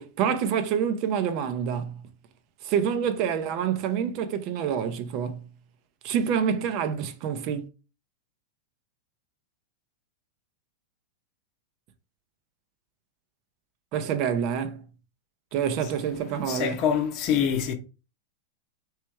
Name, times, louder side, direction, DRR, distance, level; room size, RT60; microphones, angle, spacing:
voice 1, 0.0-2.0 2.6-5.5 6.0-7.6 13.9-14.8 15.5-16.8, right 8 dB, 50° right, 0.7 m, -27 dB
voice 2, 16.4-17.7, left 8 dB, 45° left, 0.8 m, -25 dB
3.3 x 3.2 x 4.5 m
hypercardioid pair, 105°, 0 cm